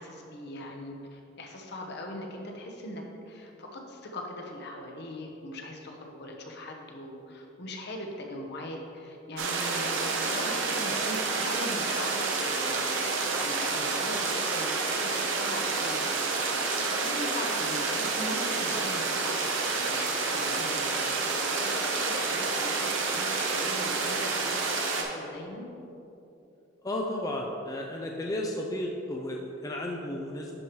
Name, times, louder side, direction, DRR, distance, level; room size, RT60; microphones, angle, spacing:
voice 1, 0.0-12.8 13.3-25.6, left 1 dB, 60° left, 1 dB, 0.9 m, -40 dB
sound 1, 9.4-25.0, right 4 dB, 80° right, 0.9 m, -29 dB
voice 2, 26.8-30.5, left 1 dB, 20° left, 0 dB, 0.4 m, -33 dB
11.0 x 4.8 x 3.1 m, 2.9 s
head